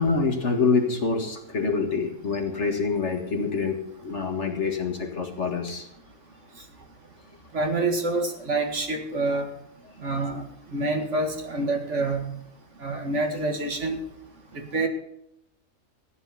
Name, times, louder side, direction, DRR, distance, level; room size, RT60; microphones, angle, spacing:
voice 1, 0.0-5.9, left 4 dB, 55° left, 4 dB, 2.0 m, -26 dB
voice 2, 7.5-9.5 10.0-10.4 10.7-12.3 12.8-14.0 14.5-14.9, right 2 dB, 55° right, 4 dB, 2.2 m, -27 dB
15.0 x 9.9 x 5.6 m, 0.76 s
omnidirectional pair, 1.5 m